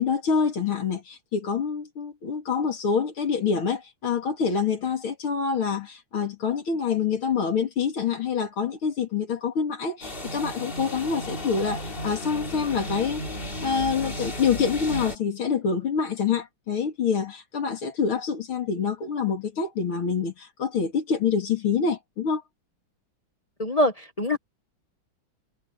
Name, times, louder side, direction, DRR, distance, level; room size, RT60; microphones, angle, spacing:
voice 1, 0.0-13.2 13.6-22.4, left 6 dB, 90° left, 3.6 m, -26 dB
sound 1, 10.0-15.2, left 1 dB, 25° left, 2.9 m, -34 dB
voice 2, 23.6-24.4, left 1 dB, 50° left, 0.4 m, -24 dB
omnidirectional pair, 2.2 m